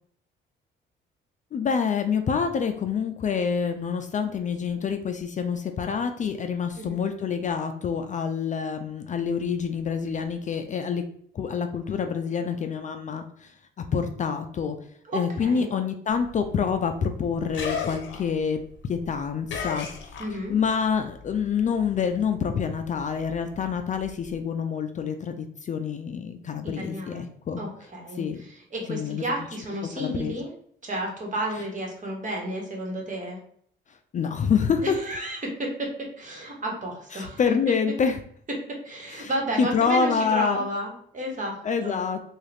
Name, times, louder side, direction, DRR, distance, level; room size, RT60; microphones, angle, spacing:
voice 1, 1.5-11.0 11.3-14.8 15.1-18.6 18.8-19.9 20.5-27.6 28.2-28.4 28.9-29.2 30.0-30.4 33.9-35.0 37.1-38.2 39.2-39.3 39.6-40.7 41.6-42.2, left 6 dB, 40° left, 7 dB, 0.4 m, -27 dB
voice 2, 15.1-15.7 20.2-20.5 26.6-27.2 27.6-30.5 30.8-33.4 34.8-37.4 38.8-41.6 41.8-42.0, right 1 dB, 40° right, 0 dB, 1.3 m, -32 dB
sound 1, 16.1-20.8 21.1-24.4, left 6 dB, 70° left, 0.6 m, -37 dB
3.6 x 2.4 x 3.4 m, 0.62 s
cardioid pair, 90°, 20 cm